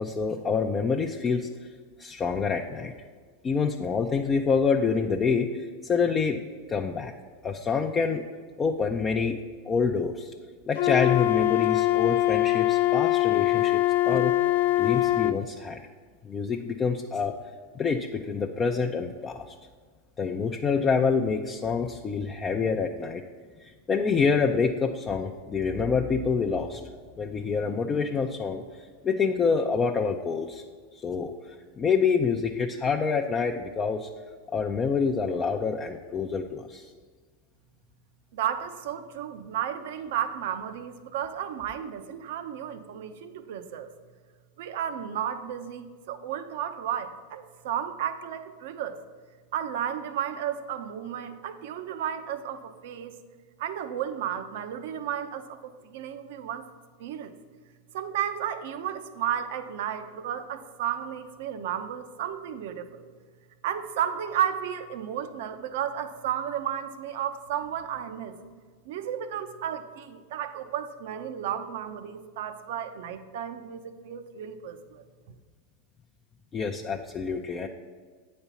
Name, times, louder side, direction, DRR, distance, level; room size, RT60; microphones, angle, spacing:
voice 1, 0.0-1.7 2.0-2.9 3.4-6.4 6.7-7.1 7.4-8.2 8.6-9.4 9.6-10.3 10.7-14.3 14.8-15.8 16.2-17.3 17.7-19.5 20.2-23.2 23.6-26.8 27.2-30.6 31.0-34.1 34.5-36.9 76.5-77.7, left 5 dB, 25° left, 3 dB, 0.5 m, -27 dB
Wind instrument woodwind instrument, 10.8-15.4, left 17 dB, 75° left, 0.4 m, -23 dB
voice 2, 38.3-43.9 44.6-49.0 49.5-53.1 53.6-56.6 57.0-57.3 57.9-63.1 63.6-68.4 68.9-75.0, right 9 dB, 70° right, 10 dB, 0.7 m, -33 dB
8.8 x 4.3 x 7.0 m, 1.5 s
hypercardioid pair, 105°, 0 cm